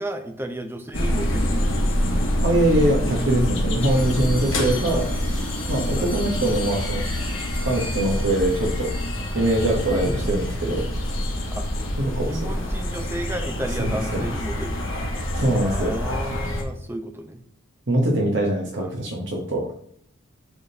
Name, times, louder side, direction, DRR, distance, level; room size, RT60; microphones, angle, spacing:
voice 1, 0.0-2.0 6.0-6.1 9.9-10.3 11.5-11.7 12.1-14.8 15.6-17.4 18.6-18.9, right 1 dB, 10° right, 6 dB, 0.5 m, -33 dB
sound 1, 0.9-16.6, equal, 70° left, 1.2 m, -26 dB
voice 2, 2.4-5.1 5.7-7.0 7.6-8.9 9.3-10.9 12.0-12.4 13.8-14.2 15.3-16.0 17.9-19.6, right 1 dB, 55° right, -1 dB, 0.9 m, -23 dB
sound 2, 3.8-15.5, left 2 dB, 10° left, 1.2 m, -40 dB
sound 3, 8.1-16.3, left 1 dB, 30° left, 2.5 m, -47 dB
10.5 x 3.5 x 2.7 m, 0.67 s
head